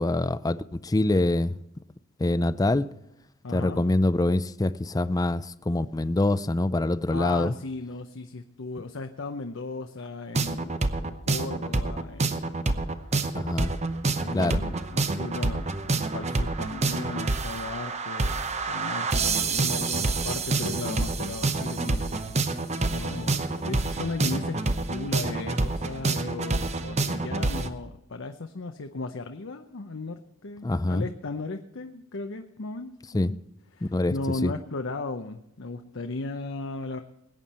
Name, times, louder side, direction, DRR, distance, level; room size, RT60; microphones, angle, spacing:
voice 1, 0.0-1.6 2.2-2.9 3.5-7.5 13.4-13.7 14.3-14.6 30.6-31.1 33.1-33.3 33.8-34.1 34.4-34.5, left 2 dB, 15° left, 15 dB, 0.4 m, -25 dB
voice 2, 3.4-3.9 7.1-12.7 14.1-18.4 18.7-22.4 22.9-24.6 24.9-33.4 33.8-37.0, left 3 dB, 65° left, 6 dB, 0.8 m, -36 dB
sound 1, 10.3-27.7, right 3 dB, 30° right, 0.8 m, -27 dB
20.5 x 9.2 x 4.3 m, 0.83 s
head